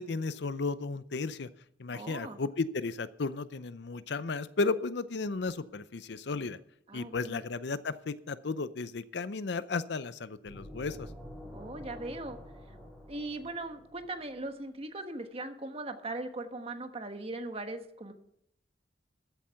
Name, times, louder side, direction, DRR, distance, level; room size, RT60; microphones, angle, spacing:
voice 1, 0.0-1.5 1.8-6.6 6.9-11.1, left 3 dB, 65° left, 15 dB, 0.6 m, -34 dB
voice 2, 1.9-2.4 6.9-7.4 11.5-12.4 13.1-18.1, right 2 dB, 35° right, 7 dB, 1.3 m, -39 dB
sound 1, 10.4-14.3, left 1 dB, ahead, 3.1 m, -47 dB
14.0 x 8.3 x 5.7 m, 0.76 s
head